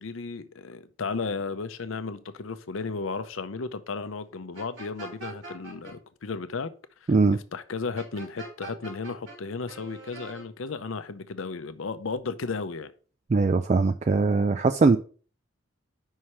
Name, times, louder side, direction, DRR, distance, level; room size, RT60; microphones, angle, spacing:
voice 1, 0.0-6.7 7.5-12.9, left 4 dB, 75° left, 0.6 m, -34 dB
sound 1, 4.5-5.9 8.0-9.4 9.7-10.4, right 3 dB, 60° right, 3.0 m, -42 dB
voice 2, 13.3-15.0, right 3 dB, 35° right, 0.3 m, -21 dB
5.6 x 4.8 x 5.6 m
head